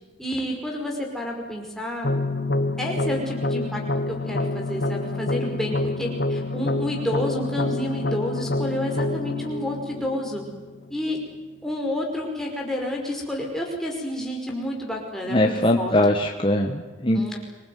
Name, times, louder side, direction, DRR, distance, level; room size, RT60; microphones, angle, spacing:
voice 1, 0.2-2.1 2.8-10.4 10.9-11.2 11.6-16.0 17.1-17.4, left 1 dB, ahead, -1 dB, 5.3 m, -30 dB
sound 1, 2.0-11.0, left 2 dB, 55° left, 1.5 m, -27 dB
voice 2, 15.3-17.4, left 1 dB, 25° left, 2 dB, 1.6 m, -21 dB
25.5 x 20.0 x 9.5 m, 1.3 s
head